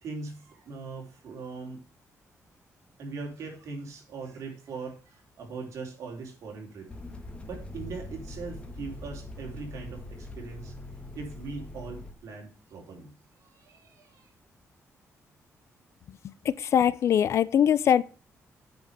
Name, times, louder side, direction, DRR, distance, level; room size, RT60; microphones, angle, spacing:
voice 1, 0.0-1.8 3.0-6.9 7.5-10.7 11.1-13.1 13.4-14.3, right 4 dB, 65° right, 3.7 m, -40 dB
sound 1, 6.9-12.1, left 2 dB, 20° left, 1.7 m, -42 dB
voice 2, 16.6-18.0, left 9 dB, 60° left, 0.6 m, -22 dB
9.4 x 5.3 x 6.7 m
wide cardioid pair, 155°, 6 cm